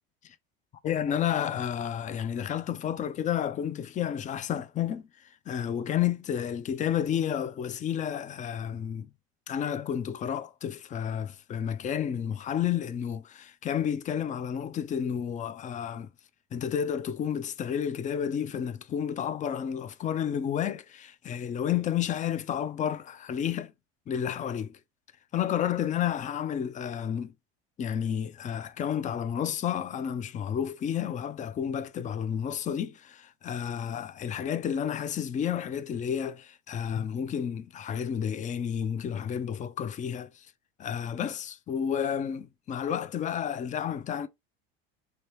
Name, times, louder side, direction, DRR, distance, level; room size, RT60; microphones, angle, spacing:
voice 1, 0.8-9.1 9.5-16.1 16.5-23.7 24.1-24.8 25.3-27.3 27.8-40.5 40.8-44.3, left 9 dB, 25° left, 0.4 m, -31 dB
3.2 x 2.8 x 3.0 m
supercardioid pair, 100°, 32 cm